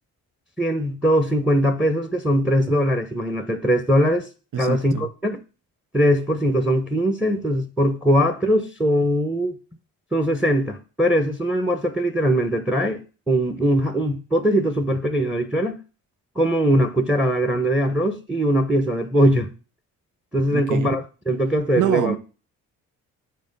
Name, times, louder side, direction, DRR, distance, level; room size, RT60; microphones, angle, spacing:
voice 1, 0.6-4.3 4.6-5.4 5.9-9.6 10.1-15.8 16.3-19.5 20.3-22.2, equal, ahead, 1.1 m, -21 dB
voice 2, 4.5-5.1 20.5-20.9 21.7-22.2, right 10 dB, 45° right, 0.8 m, -25 dB
7.4 x 4.6 x 5.4 m
hypercardioid pair, 50°, 42 cm